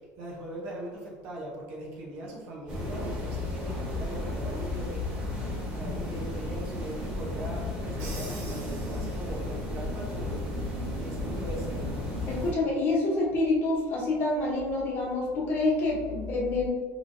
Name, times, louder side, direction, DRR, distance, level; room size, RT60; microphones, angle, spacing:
voice 1, 0.2-5.2 5.7-10.5 11.0-11.9, right 1 dB, 55° right, -3 dB, 0.8 m, -40 dB
sound 1, 2.7-12.5, left 1 dB, 20° right, 1.3 m, -33 dB
Crash cymbal, 8.0-9.7, right 3 dB, 75° right, 1.1 m, -45 dB
voice 2, 12.3-16.7, left 2 dB, 35° left, -2 dB, 0.9 m, -27 dB
3.8 x 3.0 x 2.6 m, 1.4 s
cardioid pair, 170°, 6 cm